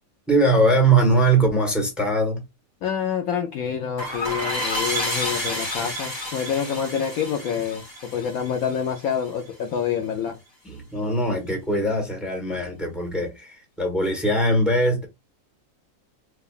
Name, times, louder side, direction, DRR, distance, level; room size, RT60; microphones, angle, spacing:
voice 1, 0.3-2.4 10.6-15.0, right 2 dB, ahead, 1.3 m, -21 dB
voice 2, 2.8-7.8 8.1-10.4, left 7 dB, 70° left, 1.0 m, -27 dB
sound 1, 4.0-9.3, left 1 dB, 20° left, 1.2 m, -30 dB
4.8 x 2.4 x 2.4 m
omnidirectional pair, 1.7 m